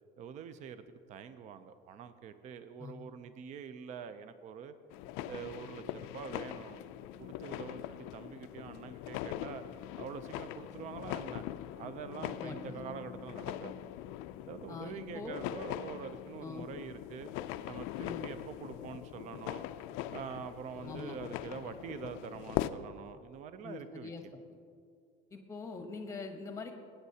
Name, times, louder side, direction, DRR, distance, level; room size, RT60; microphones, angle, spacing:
voice 1, 0.2-4.7 5.3-6.8 7.2-9.6 9.9-11.5 11.8-13.8 14.4-17.3 17.7-19.6 20.1-24.3, right 7 dB, 35° right, 11 dB, 0.4 m, -45 dB
sound 1, 4.9-22.7, left 13 dB, 80° left, 0.4 m, -41 dB
voice 2, 12.2-12.8 14.7-15.4 16.4-16.7 18.0-18.3 20.8-21.1 23.6-24.2 24.5-24.6 25.3-26.7, left 4 dB, 15° left, 5 dB, 0.9 m, -43 dB
19.5 x 9.0 x 2.8 m, 2.3 s
cardioid pair, 170°, 21 cm